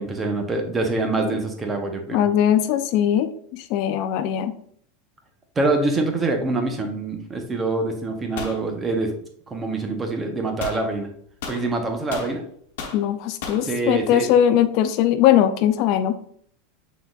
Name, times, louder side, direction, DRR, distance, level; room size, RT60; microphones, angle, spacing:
voice 1, 0.0-2.2 5.6-9.1 9.5-11.1 11.5-12.4 13.5-14.3, right 2 dB, 15° right, 4 dB, 0.8 m, -25 dB
voice 2, 2.1-4.5 12.9-16.1, left 10 dB, 50° left, 10 dB, 0.3 m, -20 dB
sound 1, 8.4-8.6 10.6-10.8 11.4-12.3 12.8-13.0 13.4-13.7, left 4 dB, 75° left, 1.0 m, -33 dB
5.7 x 3.9 x 2.4 m, 0.63 s
supercardioid pair, 150°, 0 cm